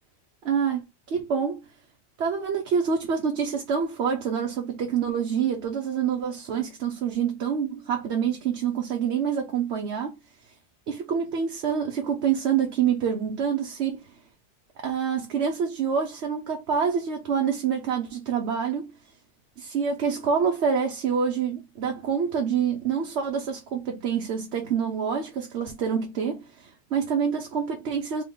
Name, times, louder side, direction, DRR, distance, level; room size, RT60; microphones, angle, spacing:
voice 1, 0.5-0.8 1.1-1.6 2.2-10.2 10.9-14.0 14.8-18.9 19.6-28.2, right 7 dB, 70° right, 1.0 m, -26 dB
3.4 x 3.0 x 3.8 m
omnidirectional pair, 1.2 m